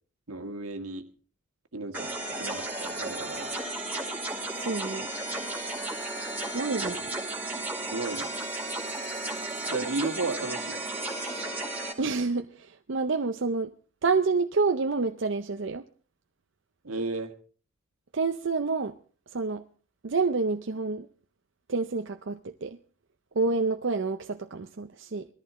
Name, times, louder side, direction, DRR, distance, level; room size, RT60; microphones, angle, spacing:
voice 1, 0.3-1.0 1.7-2.1 2.4-3.5 7.9-8.3 9.7-10.8 16.8-17.3, right 3 dB, 80° right, 6 dB, 1.7 m, -33 dB
sound 1, 1.9-11.9, right 2 dB, 10° right, 2.2 m, -34 dB
voice 2, 4.6-5.1 6.5-7.1 12.0-13.7 14.0-15.8 18.1-18.9 19.3-19.6 20.0-21.1 21.7-22.8 23.4-25.3, right 4 dB, 55° right, 7 dB, 0.6 m, -28 dB
20.0 x 14.0 x 3.7 m, 0.42 s
head